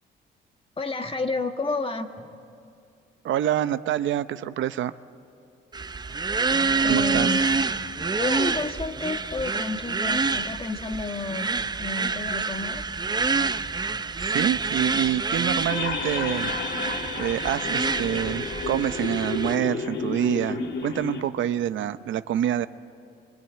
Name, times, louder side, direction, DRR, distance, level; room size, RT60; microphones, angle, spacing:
voice 1, 0.8-2.3 6.8-7.4 8.1-11.5 11.8-12.8, left 3 dB, 25° left, 6 dB, 1.9 m, -30 dB
voice 2, 3.2-4.9 6.9-7.3 14.2-16.5 17.2-22.7, right 11 dB, 75° right, 12 dB, 0.8 m, -26 dB
sound 1, 5.7-19.6, right 4 dB, 20° right, 0.7 m, -27 dB
sound 2, 15.7-21.2, left 4 dB, 65° left, 3.0 m, -31 dB
26.5 x 25.0 x 9.1 m, 2.5 s
cardioid pair, 90°, 20 cm